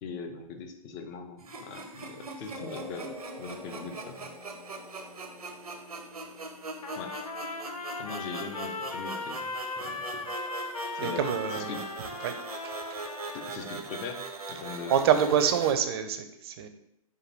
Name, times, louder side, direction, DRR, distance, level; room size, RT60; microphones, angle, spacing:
voice 1, 0.0-4.3 7.0-7.2 8.0-10.3 10.9-11.8 13.3-15.1, left 5 dB, 30° left, 6 dB, 0.4 m, -41 dB
sound 1, 1.4-15.7, right 3 dB, 90° right, 0.6 m, -41 dB
sound 2, 2.5-9.5, equal, 70° left, 0.9 m, -49 dB
Trumpet, 6.8-13.6, left 3 dB, 90° left, 0.5 m, -38 dB
voice 2, 11.0-11.9 12.2-12.4 12.6-13.0 14.9-16.7, right 8 dB, 45° right, 8 dB, 0.4 m, -27 dB
4.7 x 2.2 x 2.9 m, 0.78 s
figure-of-eight pair, 120°, 19 cm